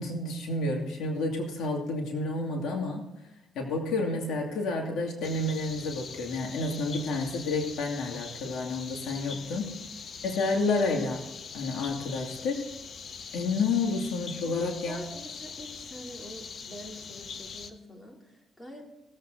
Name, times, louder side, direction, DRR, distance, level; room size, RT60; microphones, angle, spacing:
voice 1, 0.0-3.1 3.5-9.7 10.2-11.2 11.5-12.6 13.3-15.0, left 3 dB, 80° left, 1 dB, 2.5 m, -30 dB
sound 1, 5.2-17.7, left 5 dB, 55° left, 1.1 m, -42 dB
voice 2, 9.1-9.7 14.4-18.8, equal, 20° left, 1 dB, 3.1 m, -45 dB
19.5 x 8.1 x 3.9 m, 1.0 s
cardioid pair, 90°, 0 cm